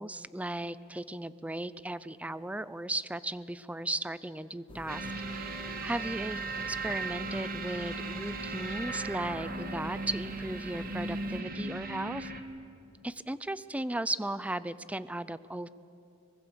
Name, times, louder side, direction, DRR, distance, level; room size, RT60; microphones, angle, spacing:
voice 1, 0.0-12.3 13.0-15.7, right 1 dB, 5° right, 16 dB, 0.5 m, -36 dB
sound 1, 4.7-11.4, left 1 dB, 30° left, 1.0 m, -48 dB
sound 2, 4.9-12.4, right 3 dB, 50° right, 1.5 m, -37 dB
24.0 x 21.5 x 7.0 m, 2.6 s
head